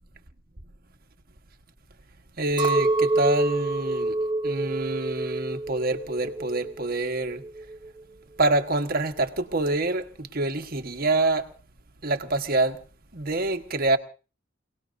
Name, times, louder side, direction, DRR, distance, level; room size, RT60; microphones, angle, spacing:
voice 1, 2.4-7.4 8.4-11.5 12.0-12.8 13.1-14.0, right 2 dB, 50° right, 1.4 m, -26 dB
Chink clink, 2.6-6.9 7.2-8.0, right 2 dB, 25° right, 1.1 m, -27 dB
28.0 x 18.5 x 2.6 m
head